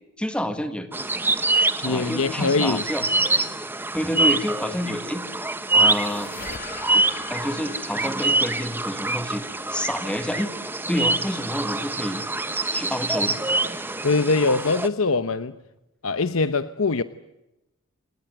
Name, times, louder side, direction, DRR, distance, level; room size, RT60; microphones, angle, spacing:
voice 1, 0.2-0.9 1.8-3.1 3.9-5.2 5.7-6.3 6.9-9.4 9.7-10.5 10.9-12.2 12.7-13.4, left 1 dB, 5° left, 8 dB, 1.7 m, -28 dB
sound 1, 0.9-14.9, right 2 dB, 10° right, 1.0 m, -25 dB
voice 2, 1.8-2.8 14.0-15.5 16.0-17.0, left 3 dB, 85° left, 12 dB, 0.9 m, -22 dB
sound 2, 5.2-10.5, left 5 dB, 45° left, 1.5 m, -43 dB
28.0 x 19.0 x 9.2 m, 0.94 s
head